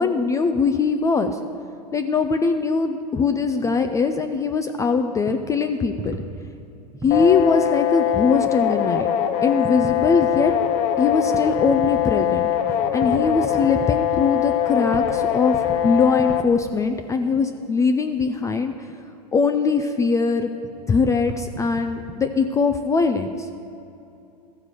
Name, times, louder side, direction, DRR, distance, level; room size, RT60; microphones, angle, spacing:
voice 1, 0.0-1.4 1.9-6.2 7.0-9.1 9.4-10.5 11.0-12.5 12.9-18.7 19.3-20.5 20.9-23.5, left 4 dB, 15° left, 7 dB, 0.3 m, -21 dB
sound 1, 3.6-4.0 4.5-4.6 5.3-5.4 6.0-7.3 8.4-8.6 9.0-9.1 9.6-10.4 11.2-12.2 12.7-13.9 14.6-14.7 14.9-15.1 15.4-16.4 16.8-16.9 18.7-18.9 20.6-20.7 21.0-22.2, right 3 dB, 15° right, 0.9 m, -36 dB
sound 2, 7.1-16.4, left 11 dB, 45° left, 0.7 m, -22 dB
14.0 x 4.7 x 6.7 m, 2.7 s
hypercardioid pair, 115°, 21 cm